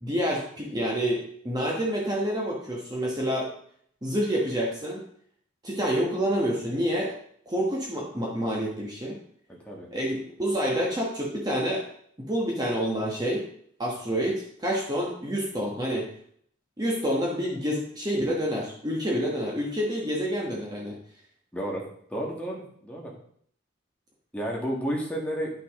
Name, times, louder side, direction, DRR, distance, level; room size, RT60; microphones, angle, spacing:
voice 1, 0.0-3.5 4.0-5.0 5.6-7.2 7.5-9.2 9.9-11.8 12.3-13.4 13.8-16.1 16.8-21.0, equal, 20° right, -2 dB, 1.2 m, -28 dB
voice 2, 21.5-21.8 22.1-23.1 24.3-25.5, equal, 5° left, -2 dB, 1.6 m, -31 dB
10.5 x 5.9 x 3.6 m, 0.64 s
head